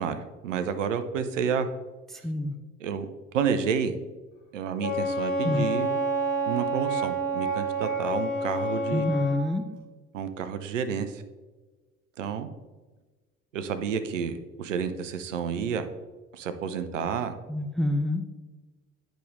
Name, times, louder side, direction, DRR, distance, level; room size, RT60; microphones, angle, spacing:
voice 1, 0.0-1.7 2.8-3.1 3.3-3.9 4.5-5.9 6.5-9.1 10.1-11.2 12.2-12.5 13.5-15.8 16.3-17.3, right 7 dB, 75° right, 10 dB, 0.7 m, -30 dB
voice 2, 2.1-2.6 5.4-5.7 8.9-9.6 17.5-18.2, left 1 dB, ahead, 8 dB, 0.4 m, -27 dB
Wind instrument woodwind instrument, 4.8-9.4, right 2 dB, 75° left, 2.1 m, -28 dB
9.0 x 5.1 x 3.1 m, 1.2 s
figure-of-eight pair, 60°, 38 cm